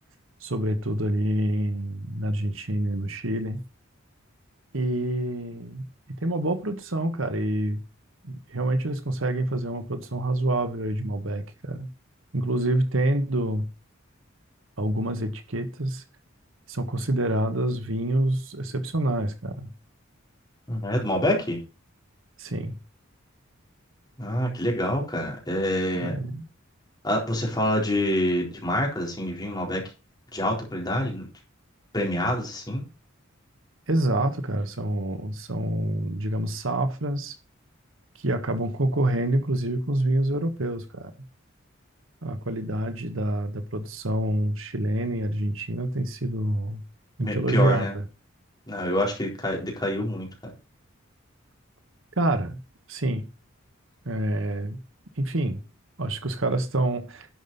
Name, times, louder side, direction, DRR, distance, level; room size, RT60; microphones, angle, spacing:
voice 1, 0.4-3.6 4.7-7.8 8.2-11.9 12.3-13.7 14.8-16.0 16.7-19.7 22.4-22.8 25.9-26.4 33.9-37.4 38.2-41.1 42.2-46.8 47.2-48.0 52.2-52.6 52.9-53.3 54.0-54.8 55.2-55.6 56.0-57.3, right 1 dB, 75° right, 1.6 m, -27 dB
voice 2, 20.7-21.6 24.2-26.1 27.0-29.8 30.3-31.2 31.9-32.8 47.2-47.9 48.7-50.5, left 1 dB, 20° left, 4.1 m, -26 dB
11.5 x 6.3 x 5.5 m
head